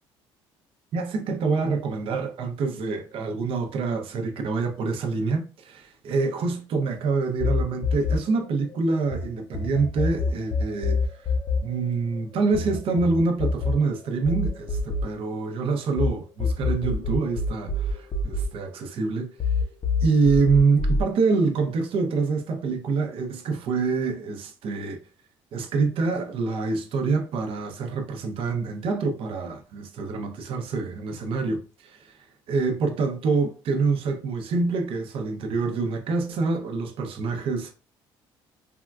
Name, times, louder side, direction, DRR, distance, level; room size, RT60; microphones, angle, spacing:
voice 1, 0.9-11.3 11.6-19.3 20.0-25.0 25.5-37.7, right 4 dB, 60° right, 0.6 m, -26 dB
sound 1, 7.4-9.2 9.5-16.1 16.4-19.1 19.4-21.0, left 3 dB, 35° left, 0.5 m, -26 dB
3.5 x 2.2 x 2.3 m
supercardioid pair, 85°, 10 cm